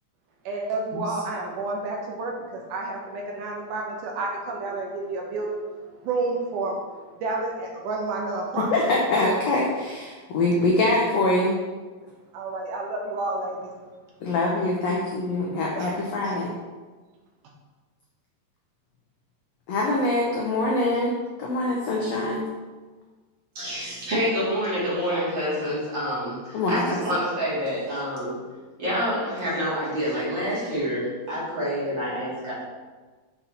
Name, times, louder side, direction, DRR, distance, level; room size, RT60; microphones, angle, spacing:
voice 1, 0.5-8.7 12.3-13.7 15.8-16.0, right 3 dB, 75° right, 0 dB, 2.2 m, -30 dB
voice 2, 8.7-11.6 14.2-16.5 19.7-22.4 26.5-27.0, left 2 dB, 80° left, -3 dB, 1.5 m, -24 dB
voice 3, 23.5-28.4 28.8-32.5, equal, 40° right, -8 dB, 2.4 m, -27 dB
7.2 x 4.1 x 4.1 m, 1.3 s
omnidirectional pair, 4.0 m